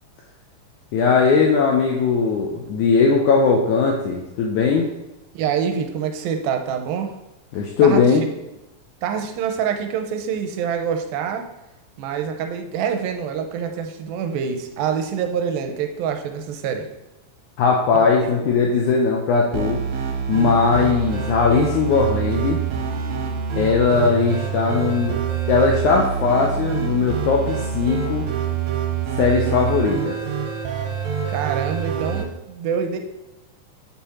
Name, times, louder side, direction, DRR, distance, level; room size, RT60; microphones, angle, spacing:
voice 1, 0.9-4.9 7.5-8.2 17.6-19.8 20.3-22.6 23.6-25.2 25.5-28.2 29.2-30.2, left 5 dB, 85° left, 0 dB, 1.8 m, -19 dB
voice 2, 5.3-7.1 7.8-8.1 9.0-11.5 12.0-16.9 18.2-18.3 31.3-33.0, right 7 dB, 85° right, 6 dB, 2.4 m, -26 dB
sound 1, 19.5-32.2, right 7 dB, 65° right, 2.2 m, -26 dB
6.6 x 5.7 x 4.3 m, 0.94 s
omnidirectional pair, 4.2 m